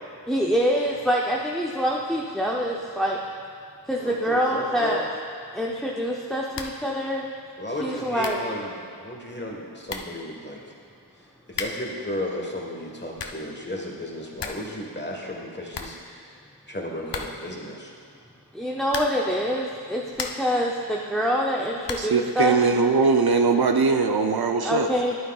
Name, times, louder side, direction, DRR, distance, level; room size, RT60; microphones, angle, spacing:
voice 1, 0.3-3.2 3.9-5.1 5.5-7.3 7.8-8.4 18.5-22.6 24.6-25.2, equal, ahead, -2 dB, 0.6 m, -25 dB
voice 2, 4.0-5.0 7.6-10.6 11.5-16.4 16.7-17.9, left 1 dB, 25° left, -1 dB, 1.4 m, -34 dB
sound 1, 6.5-6.9 7.2-7.3 7.9-8.0 8.2-8.5 9.5-9.6 9.9-10.2 11.5-12.0 12.9-13.5 13.9-14.0 14.2-14.7 15.0-15.1 15.4-15.5 15.7-16.5 17.1-17.6 18.8-19.3 19.8-20.6 21.8-22.2, left 4 dB, 70° left, 0.7 m, -35 dB
voice 3, 22.0-24.9, right 4 dB, 55° right, 4 dB, 0.5 m, -21 dB
11.0 x 9.1 x 2.4 m, 2.3 s
wide cardioid pair, 60°, 44 cm